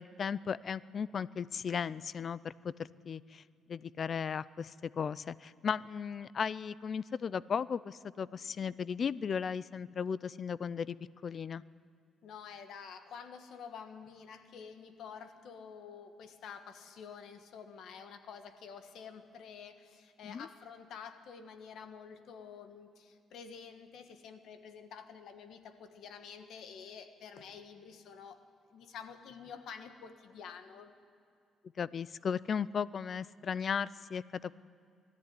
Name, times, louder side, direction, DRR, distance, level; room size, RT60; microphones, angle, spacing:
voice 1, 0.0-3.4 3.7-11.0 11.2-11.6 20.2-20.5 31.8-34.5, left 6 dB, 45° left, 19 dB, 0.4 m, -36 dB
voice 2, 12.2-28.4 28.7-30.9, left 6 dB, 75° left, 8 dB, 1.4 m, -49 dB
20.0 x 14.0 x 9.6 m, 2.4 s
cardioid pair, 110°, 0 cm